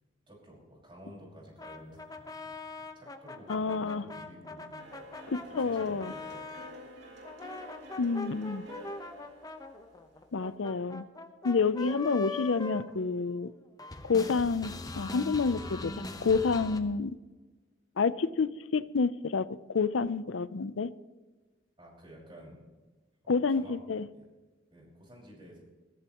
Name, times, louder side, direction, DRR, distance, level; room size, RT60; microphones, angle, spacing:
voice 1, 0.3-7.1 21.8-22.6 23.2-23.8 24.1-24.3 24.7-25.6, equal, 25° right, 5.3 m, -52 dB
sound 1, 1.6-6.7 7.2-13.5 13.8-16.8, left 3 dB, 20° left, 1.0 m, -42 dB
voice 2, 3.5-4.0 5.3-6.1 8.0-8.7 10.3-11.1 11.4-13.5 14.0-17.2 18.0-20.9 23.3-24.1, left 4 dB, 90° left, 0.6 m, -29 dB
sound 2, 4.8-10.5, right 1 dB, 60° right, 3.3 m, -50 dB
21.5 x 15.0 x 3.0 m
head